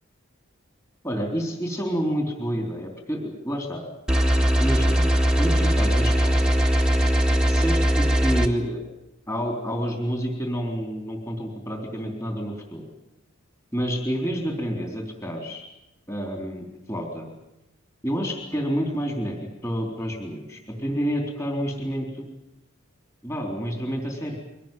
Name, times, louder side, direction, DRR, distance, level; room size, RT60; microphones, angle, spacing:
voice 1, 1.0-3.8 4.6-6.5 7.5-8.8 9.3-12.8 13.7-15.6 16.1-17.3 18.0-19.4 19.6-22.3 23.2-24.4, equal, 15° left, 2 dB, 3.9 m, -29 dB
sound 1, 4.1-8.5, equal, 5° right, 1.7 m, -20 dB
23.5 x 18.0 x 9.2 m, 0.89 s
head